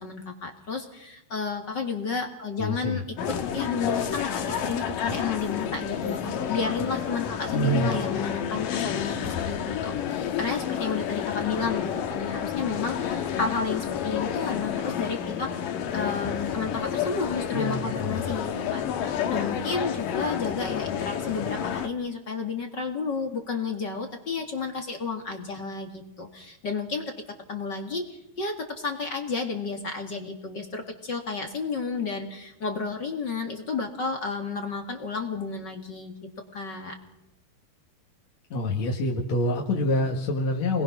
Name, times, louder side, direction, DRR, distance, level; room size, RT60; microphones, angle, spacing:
voice 1, 0.0-3.0 3.3-27.1 27.5-36.1 36.5-37.0, left 4 dB, 40° left, 4 dB, 1.9 m, -32 dB
voice 2, 2.6-3.0 7.5-7.9 17.5-18.3 38.5-40.8, left 1 dB, 55° left, 0 dB, 2.8 m, -26 dB
sound 1, 3.2-21.9, left 8 dB, 70° left, 2.8 m, -30 dB
29.5 x 21.0 x 6.0 m, 0.89 s
omnidirectional pair, 4.2 m